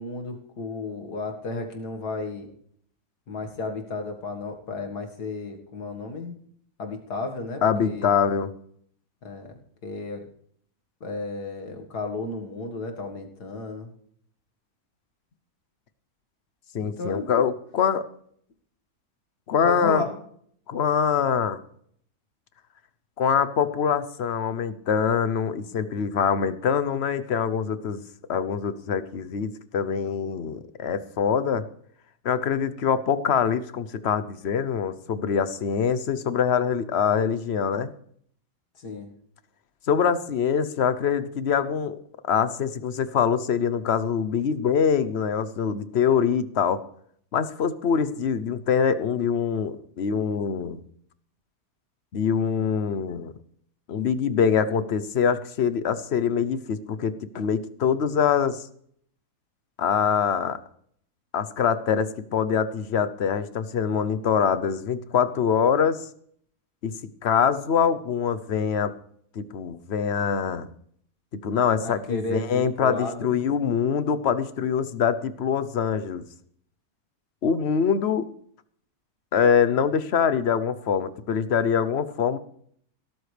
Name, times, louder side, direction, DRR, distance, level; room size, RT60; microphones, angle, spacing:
voice 1, 0.0-2.5 3.3-6.4 6.8-8.1 9.2-9.5 9.8-10.2 11.0-13.9 16.8-17.3 19.6-20.2 38.8-39.1 71.8-73.3, left 3 dB, 80° left, 4 dB, 2.4 m, -33 dB
voice 2, 7.6-8.5 16.7-18.0 19.5-20.0 20.7-21.6 23.2-28.0 28.3-31.6 32.2-37.9 39.9-42.0 42.3-46.8 47.3-50.8 52.1-53.3 53.9-58.6 59.8-60.6 61.3-66.0 66.8-66.9 67.2-68.9 69.3-70.7 71.4-76.2 77.4-78.3 79.3-82.4, left 7 dB, 50° left, 13 dB, 0.9 m, -24 dB
17.0 x 13.0 x 3.4 m, 0.64 s
omnidirectional pair, 1.7 m